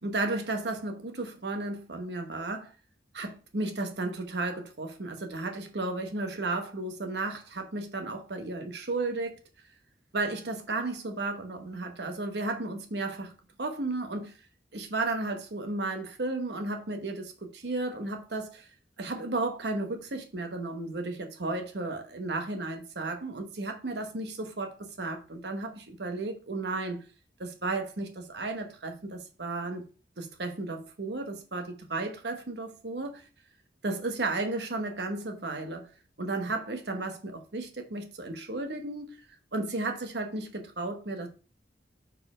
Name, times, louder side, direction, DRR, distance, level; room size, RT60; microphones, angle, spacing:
voice 1, 0.0-2.7 3.1-9.4 10.1-13.3 13.6-14.3 14.7-18.7 19.0-27.0 27.4-29.8 30.2-33.2 33.8-35.9 36.2-39.1 39.5-41.3, right 2 dB, 70° right, 1.1 m, -34 dB
4.6 x 4.2 x 4.9 m
head